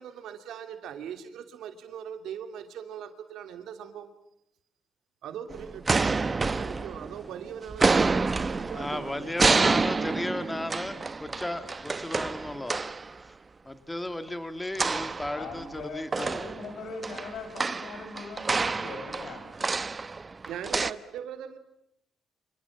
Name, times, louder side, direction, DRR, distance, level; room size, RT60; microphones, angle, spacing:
voice 1, 0.0-4.1 5.2-10.7 20.5-21.6, right 8 dB, 80° right, 8 dB, 2.9 m, -41 dB
sound 1, 5.5-7.3 7.7-13.1 14.7-15.8 16.1-20.9, right 4 dB, 30° right, 1.0 m, -28 dB
voice 2, 8.7-12.8 13.2-13.3 13.7-16.5, left 1 dB, 10° left, 10 dB, 2.5 m, -35 dB
voice 3, 15.3-20.0, left 4 dB, 70° left, 6 dB, 7.4 m, -41 dB
27.5 x 27.5 x 7.4 m, 0.76 s
cardioid pair, 90°, 0 cm